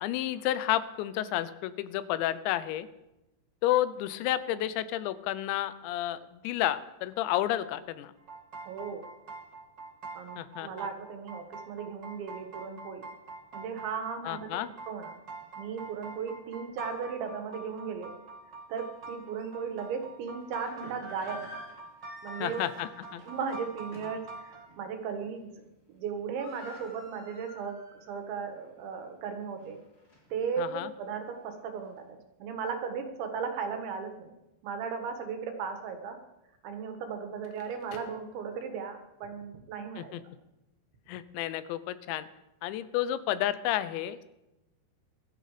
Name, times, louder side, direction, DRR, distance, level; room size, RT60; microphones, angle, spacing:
voice 1, 0.0-2.9 3.6-8.1 10.4-10.9 14.2-14.7 22.4-23.2 30.6-30.9 40.0-40.2 41.1-42.3 42.6-44.2, left 13 dB, 85° left, 14 dB, 3.0 m, -31 dB
sound 1, 8.2-24.7, right 2 dB, 55° right, 1.2 m, -45 dB
voice 2, 8.6-9.1 10.2-13.1 13.5-15.2 15.6-18.1 18.7-21.5 22.2-22.7 23.2-25.6 25.9-29.8 30.3-34.3 34.6-36.2 36.6-40.1, right 6 dB, 90° right, 6 dB, 4.0 m, -36 dB
sound 2, 18.7-18.8 19.4-19.5 20.4-24.3 24.7-24.8 25.2-25.6 25.9-26.0 26.1-28.1 28.5-28.6 29.2-30.6, left 1 dB, 25° left, 4.0 m, -49 dB
Crackle, 37.2-39.0, left 5 dB, 60° left, 2.4 m, -54 dB
20.0 x 13.5 x 5.0 m, 0.96 s
omnidirectional pair, 5.1 m